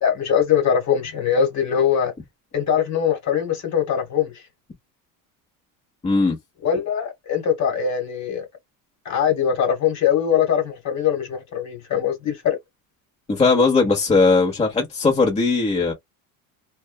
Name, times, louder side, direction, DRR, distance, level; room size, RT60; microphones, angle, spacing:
voice 1, 0.0-2.1 2.5-4.3 6.6-8.4 9.0-12.6, left 8 dB, 45° left, 1.4 m, -22 dB
voice 2, 6.0-6.4 13.3-15.9, left 3 dB, 15° left, 0.9 m, -18 dB
2.5 x 2.3 x 2.2 m
cardioid pair, 115°, 39 cm